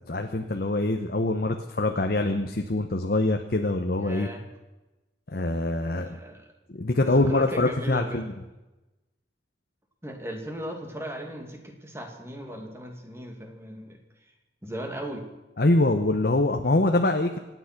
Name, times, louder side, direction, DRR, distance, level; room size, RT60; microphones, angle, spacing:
voice 1, 0.0-4.3 5.3-6.1 6.7-8.2 15.6-17.4, left 2 dB, 55° left, 5 dB, 1.0 m, -24 dB
voice 2, 4.0-4.4 5.9-6.4 7.0-8.3 10.0-14.3 14.6-15.3, equal, 15° right, 3 dB, 2.3 m, -37 dB
26.0 x 9.3 x 6.0 m, 1.0 s
head